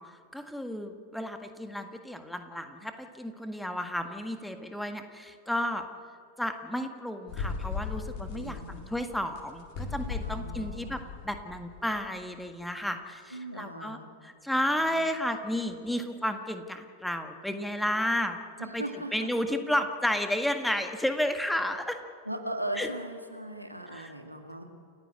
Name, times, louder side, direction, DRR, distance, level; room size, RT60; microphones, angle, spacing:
voice 1, 0.0-5.8 6.4-18.4 18.7-18.8 19.1-22.0 22.8-22.9 23.9-24.1, left 1 dB, ahead, 6 dB, 1.7 m, -32 dB
sound 1, 7.3-12.1, left 5 dB, 45° left, 4.0 m, -37 dB
voice 2, 8.3-8.8 10.2-11.0 13.3-14.1 14.7-15.0 18.6-19.3 22.2-24.6, right 1 dB, 90° right, 4 dB, 2.1 m, -38 dB
29.5 x 15.0 x 8.1 m, 2.2 s
figure-of-eight pair, 90°, 0 cm